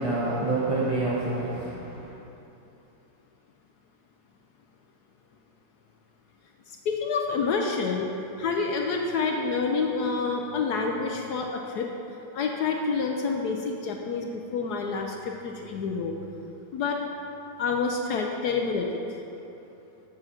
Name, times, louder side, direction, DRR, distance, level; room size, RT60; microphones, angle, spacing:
voice 1, 0.0-2.1, right 2 dB, 25° right, -7 dB, 0.8 m, -27 dB
voice 2, 6.7-8.1 8.4-11.9 12.3-16.1 16.7-17.2 17.6-19.0, left 4 dB, 65° left, 2 dB, 1.1 m, -28 dB
7.6 x 7.3 x 5.8 m, 2.9 s
omnidirectional pair, 2.1 m